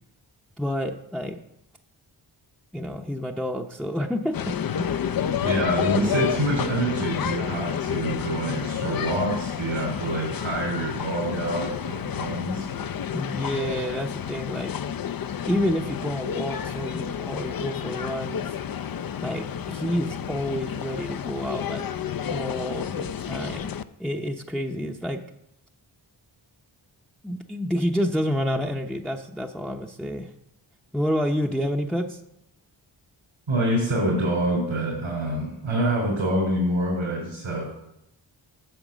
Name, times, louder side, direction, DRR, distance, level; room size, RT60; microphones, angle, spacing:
voice 1, 0.6-1.4 2.7-5.0 5.9-6.3 13.1-14.7 15.5-18.6 19.2-21.8 22.3-23.7 24.0-25.2 27.2-30.3 30.9-32.2, equal, ahead, 1 dB, 0.7 m, -29 dB
sound 1, 4.3-23.8, left 9 dB, 50° left, 0.5 m, -30 dB
voice 2, 5.4-12.9 33.5-37.7, right 1 dB, 90° right, -5 dB, 3.8 m, -26 dB
9.0 x 6.0 x 7.3 m, 0.83 s
wide cardioid pair, 65°, 47 cm